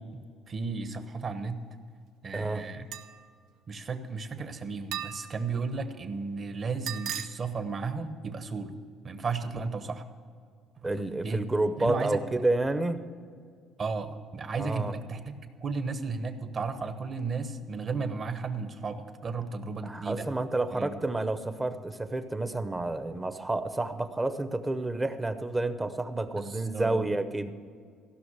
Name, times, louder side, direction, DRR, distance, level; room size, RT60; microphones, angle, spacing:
voice 1, 0.1-1.6 2.2-2.8 3.7-8.8 9.0-10.0 10.8-10.9 11.2-11.5 11.8-12.2 13.8-20.3 20.7-21.0 26.4-27.1, right 4 dB, 35° right, 9 dB, 1.0 m, -34 dB
voice 2, 2.3-2.6 10.8-13.0 14.6-14.9 19.8-27.5, right 2 dB, 15° right, 10 dB, 0.7 m, -30 dB
sound 1, 2.9-3.3 4.9-5.5 6.9-7.3, right 10 dB, 85° right, 0.8 m, -36 dB
15.5 x 6.1 x 8.1 m, 2.1 s
cardioid pair, 125°, 0 cm